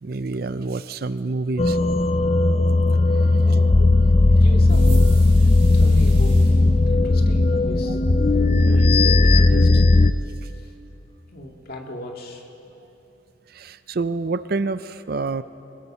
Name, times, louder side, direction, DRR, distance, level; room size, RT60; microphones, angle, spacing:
voice 1, 0.0-1.8 7.9-8.0 8.7-8.9 10.4-10.5 13.5-15.4, right 3 dB, 50° right, 13 dB, 0.5 m, -27 dB
sound 1, 1.6-10.1, left 2 dB, 30° left, 0.5 m, -16 dB
voice 2, 3.2-4.0 4.3-5.3 5.7-6.4 6.9-8.0 8.6-9.9 10.5-10.7 11.3-12.5, left 1 dB, 50° left, 1 dB, 2.4 m, -37 dB
sound 2, 4.7-6.5, right 5 dB, 30° right, 7.4 m, -43 dB
26.0 x 21.5 x 5.7 m, 2.9 s
head